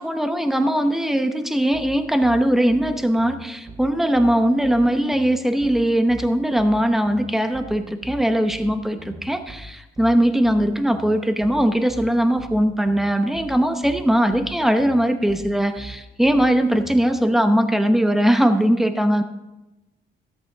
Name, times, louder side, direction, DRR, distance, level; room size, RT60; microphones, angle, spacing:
voice 1, 0.0-19.2, equal, ahead, 8 dB, 0.9 m, -20 dB
sound 1, 1.7-17.0, right 2 dB, 20° right, 3.5 m, -41 dB
13.0 x 8.3 x 3.9 m, 1.0 s
cardioid pair, 90°, 20 cm